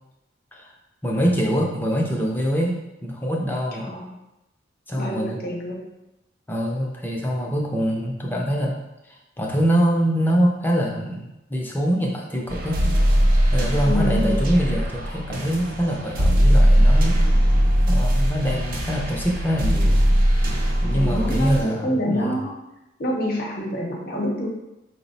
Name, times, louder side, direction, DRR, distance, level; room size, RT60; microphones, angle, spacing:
voice 1, 1.0-3.9 4.9-5.4 6.5-12.9 13.5-17.2 17.9-20.0 20.8-22.4, equal, 10° left, -1 dB, 0.5 m, -24 dB
voice 2, 3.7-4.1 4.9-5.9 13.8-14.4 20.8-22.5 23.0-24.5, equal, 50° left, 0 dB, 0.8 m, -27 dB
sound 1, 12.5-21.6, equal, 45° right, 0.6 m, -20 dB
4.7 x 2.0 x 4.0 m, 0.96 s
head